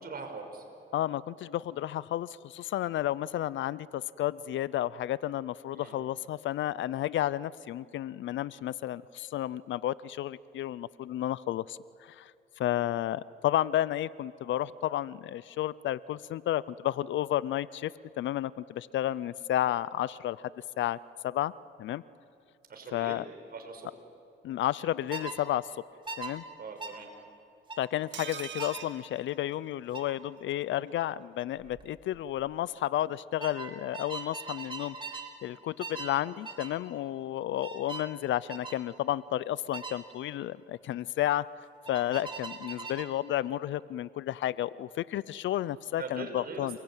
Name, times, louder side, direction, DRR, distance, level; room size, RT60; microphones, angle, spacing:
voice 1, 0.0-0.6 5.7-6.0 12.7-12.9 22.7-23.2 23.5-23.9 26.6-27.1 41.9-42.1 46.0-46.8, right 4 dB, 50° right, 4 dB, 5.9 m, -42 dB
voice 2, 0.9-12.3 12.6-17.9 18.2-20.5 20.8-21.0 21.2-21.5 21.8-22.0 22.9-23.3 24.4-25.7 26.2-26.4 27.8-35.0 35.4-41.4 41.9-46.8, left 13 dB, 70° left, 19 dB, 0.6 m, -32 dB
sound 1, 25.1-25.4 26.1-26.3 26.8-27.0 27.7-27.9 28.6-28.8 29.9-30.1 31.6-31.8 32.1-32.5 33.4-35.3 35.8-36.2 36.5-36.8 37.6-38.1 38.5-38.8 39.7-40.0 41.9-43.1, right 4 dB, 25° right, 3.1 m, -40 dB
sound 2, 28.1-30.1 30.4-30.5 30.8-30.9, right 9 dB, 65° right, 1.9 m, -43 dB
29.5 x 22.0 x 9.0 m, 2.7 s
cardioid pair, 90°, 20 cm